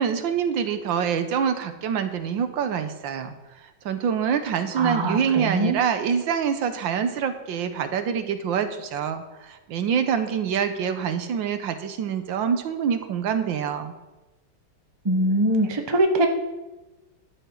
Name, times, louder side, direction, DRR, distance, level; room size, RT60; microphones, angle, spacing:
voice 1, 0.0-3.3 3.8-13.9, right 7 dB, 75° right, 9 dB, 1.6 m, -25 dB
voice 2, 4.8-5.8 15.0-16.3, right 1 dB, 20° right, 4 dB, 0.7 m, -22 dB
13.5 x 10.5 x 3.9 m, 1.1 s
omnidirectional pair, 2.2 m